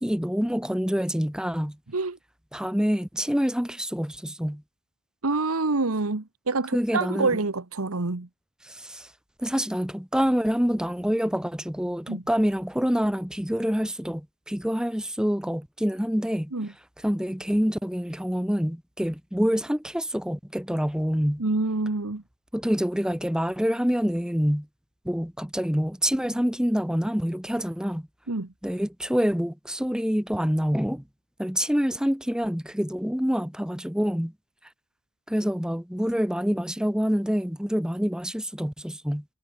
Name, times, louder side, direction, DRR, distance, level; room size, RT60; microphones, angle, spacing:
voice 1, 0.0-1.8 2.5-4.6 6.7-7.4 8.6-9.1 9.4-16.5 17.0-21.4 22.5-24.7 25.0-28.1 28.6-31.0 31.4-34.3 35.3-39.2, equal, 5° right, 1.1 m, -26 dB
voice 2, 5.2-8.3 12.1-12.2 16.5-16.7 21.4-22.2 28.3-28.5, right 3 dB, 80° right, 1.3 m, -26 dB
head